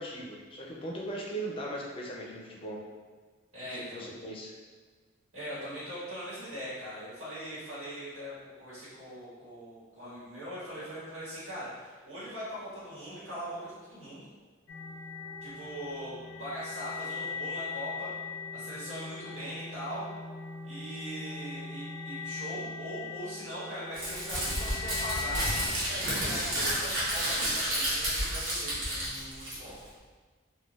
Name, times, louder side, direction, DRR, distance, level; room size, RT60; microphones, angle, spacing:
voice 1, 0.0-2.8 3.7-4.5, right 1 dB, 30° left, -2 dB, 0.4 m, -38 dB
voice 2, 3.5-4.0 5.3-14.2 15.4-18.1 18.5-20.1 20.6-29.8, equal, 85° right, -12 dB, 1.3 m, -41 dB
sound 1, 14.7-25.7, left 5 dB, 90° left, 0.4 m, -40 dB
Crumpling crinkling, 23.9-29.9, right 1 dB, 65° right, 1.1 m, -31 dB
3.8 x 2.2 x 2.4 m, 1.4 s
head